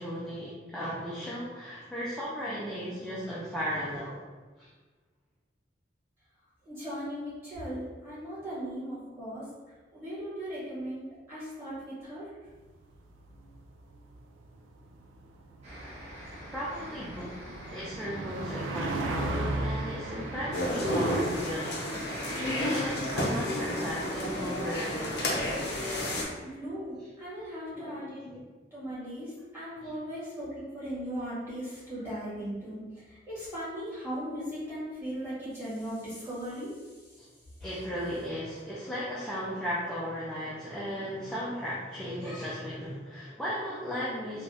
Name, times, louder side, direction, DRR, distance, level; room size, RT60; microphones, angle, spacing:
voice 1, 0.0-4.2 4.6-4.7 16.5-21.8 22.6-25.4 27.8-28.4 29.8-29.9 37.2-37.3 37.6-44.4, equal, 5° left, -9 dB, 0.4 m, -36 dB
voice 2, 6.6-9.5 9.9-12.3 26.4-28.2 28.7-37.1, equal, 15° right, -12 dB, 1.4 m, -38 dB
sound 1, 12.7-21.2, right 2 dB, 85° right, 0.4 m, -36 dB
sound 2, 15.6-26.2, equal, 35° right, 0.8 m, -42 dB
sound 3, 20.5-26.2, left 1 dB, 60° left, 0.5 m, -31 dB
3.3 x 2.3 x 2.6 m, 1.3 s
head